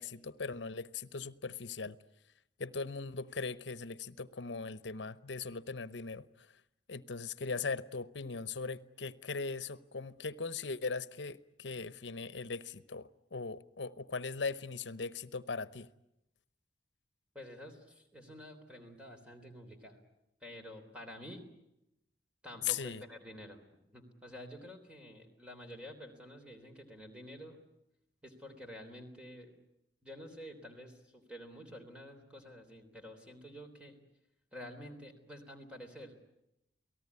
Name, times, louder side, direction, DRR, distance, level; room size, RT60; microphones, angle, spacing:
voice 1, 0.0-2.0 2.6-6.5 6.9-15.9 22.6-23.0, left 4 dB, 80° left, 0.9 m, -39 dB
voice 2, 17.3-20.0 20.4-21.4 22.4-23.6 23.9-27.6 28.2-29.6 30.0-34.0 34.5-36.1, equal, 5° right, 3.5 m, -49 dB
29.0 x 18.5 x 9.7 m
head